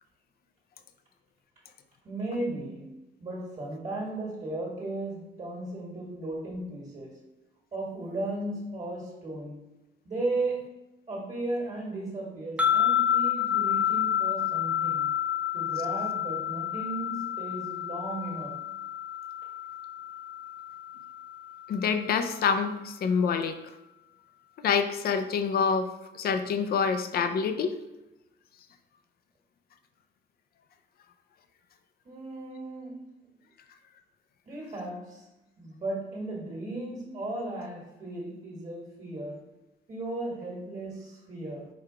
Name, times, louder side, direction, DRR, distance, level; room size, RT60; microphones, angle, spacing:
voice 1, 2.0-2.9 3.2-7.2 7.7-9.6 10.0-10.7 11.1-15.1 15.5-18.6 32.0-33.0 34.4-35.3 35.6-39.4 39.9-41.7, right 2 dB, 35° right, -3 dB, 1.6 m, -35 dB
sound 1, 12.6-21.9, left 10 dB, 5° right, 0.4 m, -29 dB
voice 2, 21.7-23.6 24.6-25.9 26.1-27.7, left 6 dB, 50° left, 8 dB, 0.4 m, -26 dB
4.8 x 2.3 x 4.8 m, 0.99 s
cardioid pair, 90°, 20 cm